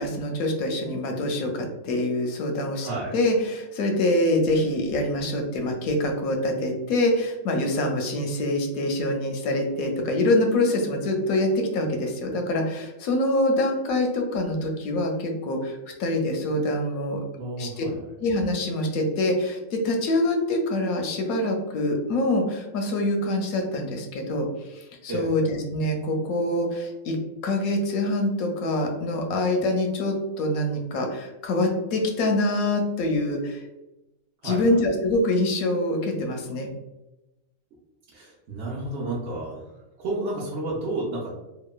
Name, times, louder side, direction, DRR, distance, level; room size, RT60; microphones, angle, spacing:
voice 1, 0.0-17.2 17.6-17.8 18.2-27.2 27.4-33.6 34.4-36.7, left 1 dB, 85° left, 3 dB, 1.0 m, -25 dB
voice 2, 2.8-3.1 17.4-18.1 25.1-25.3 34.4-34.8 38.1-39.7 40.0-41.3, right 2 dB, 65° right, -6 dB, 0.8 m, -31 dB
2.9 x 2.1 x 2.2 m, 0.99 s
omnidirectional pair, 1.5 m